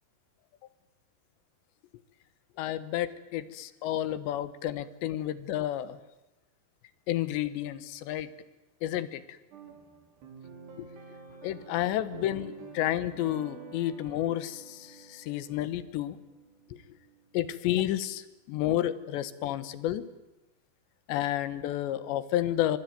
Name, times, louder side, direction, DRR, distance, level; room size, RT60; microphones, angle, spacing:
voice 1, 2.6-6.0 7.1-8.3 8.8-9.2 11.4-16.2 16.7-16.8 17.3-20.1 21.1-22.8, left 13 dB, 85° left, 15 dB, 3.4 m, -31 dB
sound 1, 9.5-18.0, right 5 dB, 70° right, 6.1 m, -49 dB
25.0 x 24.0 x 9.3 m, 1.0 s
omnidirectional pair, 5.0 m